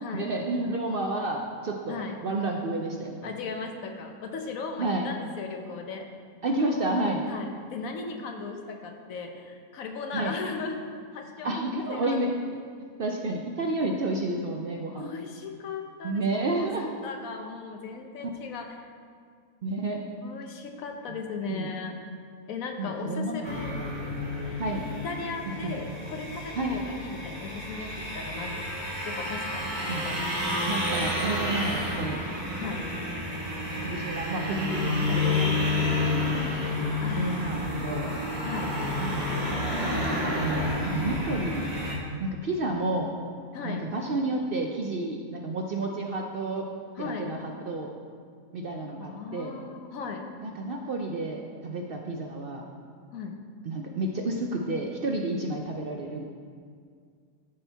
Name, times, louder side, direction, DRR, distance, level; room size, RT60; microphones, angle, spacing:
voice 1, 0.1-3.3 4.8-5.1 6.4-7.2 10.1-10.3 11.4-12.3 12.8-15.1 16.0-16.9 19.6-20.0 21.1-21.2 21.5-21.7 22.8-23.9 24.6-24.8 25.6-25.8 26.6-26.8 29.9-30.0 30.7-32.2 33.8-38.1 38.9-39.4 40.3-41.7 42.2-43.1 43.6-46.7 47.0-47.9 48.5-49.6 50.4-52.6 53.6-56.2, right 2 dB, 60° right, 1 dB, 0.6 m, -31 dB
voice 2, 3.2-6.1 7.3-10.8 11.1-12.2 14.9-16.7 17.0-18.8 20.2-21.9 22.5-23.7 24.9-29.7 30.0-30.2 32.6-32.9 37.0-37.5 38.4-38.8 43.5-43.8 47.0-47.4 49.0-50.3 53.1-53.3, left 4 dB, 70° left, 3 dB, 1.2 m, -37 dB
sound 1, 23.4-41.9, left 2 dB, 30° right, 1.5 m, -30 dB
13.0 x 4.4 x 3.4 m, 2.1 s
omnidirectional pair, 1.5 m